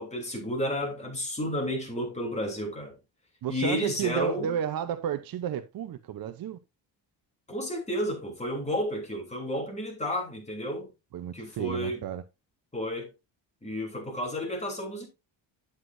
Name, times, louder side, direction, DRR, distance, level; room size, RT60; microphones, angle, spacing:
voice 1, 0.0-3.0 3.5-4.6 7.5-10.9 11.3-12.0 12.7-13.1 13.6-15.1, left 1 dB, 15° left, 3.2 m, -32 dB
voice 2, 3.4-6.6 11.1-12.2, right 9 dB, 50° right, 0.7 m, -32 dB
9.6 x 8.0 x 2.6 m
cardioid pair, 150°, 45 cm